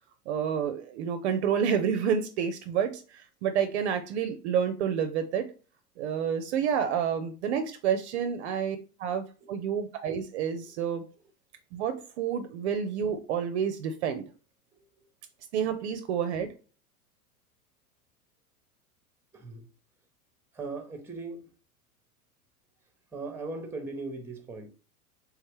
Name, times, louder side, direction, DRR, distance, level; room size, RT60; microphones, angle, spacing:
voice 1, 0.3-5.5 6.0-11.0 11.7-14.3 15.5-16.5, right 8 dB, 50° right, 0.5 m, -29 dB
voice 2, 19.3-19.7 20.5-21.5 23.1-24.7, right 3 dB, 5° right, 0.7 m, -39 dB
3.4 x 3.2 x 3.1 m
hypercardioid pair, 100°, 45 cm